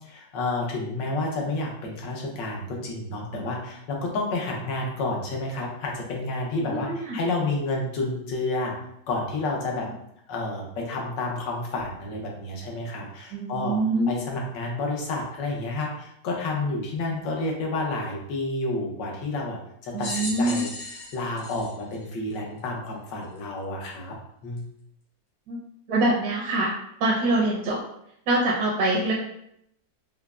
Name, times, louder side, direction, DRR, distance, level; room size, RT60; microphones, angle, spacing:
voice 1, 0.0-8.7 9.1-9.9 10.3-13.8 14.1-19.6 19.8-24.2 24.4-24.6, left 2 dB, 85° left, -1 dB, 1.5 m, -30 dB
voice 2, 6.6-7.2 13.3-14.1 19.9-20.6 25.5-25.6 25.9-26.7 27.0-27.8 28.3-29.1, right 2 dB, 75° right, -5 dB, 1.3 m, -24 dB
sound 1, 20.0-22.7 23.4-23.5 24.6-24.7, left 1 dB, 70° left, 1.6 m, -36 dB
5.6 x 2.0 x 2.4 m, 0.75 s
omnidirectional pair, 1.9 m